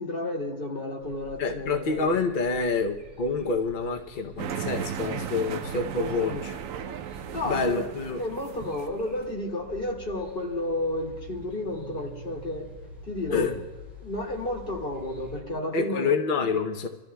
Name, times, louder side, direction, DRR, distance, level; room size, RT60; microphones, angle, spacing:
voice 1, 0.0-2.1 6.2-6.4 7.3-7.8 8.2-12.7 13.0-13.5 14.0-16.1, left 1 dB, 30° left, -1 dB, 2.3 m, -32 dB
sound 1, 1.0-15.4, equal, 30° right, 5.2 m, -47 dB
voice 2, 1.4-6.5 7.4-8.2 13.3-13.6 15.7-16.9, left 4 dB, 55° left, 4 dB, 0.5 m, -27 dB
sound 2, 4.4-9.2, right 8 dB, 65° right, 0.9 m, -35 dB
27.5 x 13.5 x 2.3 m, 1.2 s
omnidirectional pair, 1.8 m